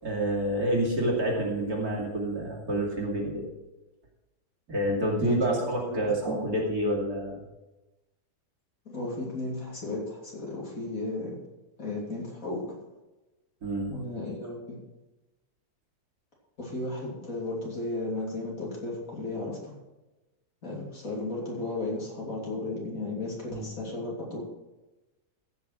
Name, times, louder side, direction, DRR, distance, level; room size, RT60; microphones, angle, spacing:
voice 1, 0.0-3.4 4.7-7.4 13.6-13.9 23.5-23.7, right 1 dB, 55° right, -3 dB, 3.1 m, -28 dB
voice 2, 5.2-6.4 8.9-11.4 11.8-12.7 13.9-14.8 16.6-19.7 20.6-24.4, left 2 dB, 50° left, -3 dB, 3.4 m, -34 dB
15.0 x 5.9 x 6.0 m, 1.1 s
omnidirectional pair, 1.9 m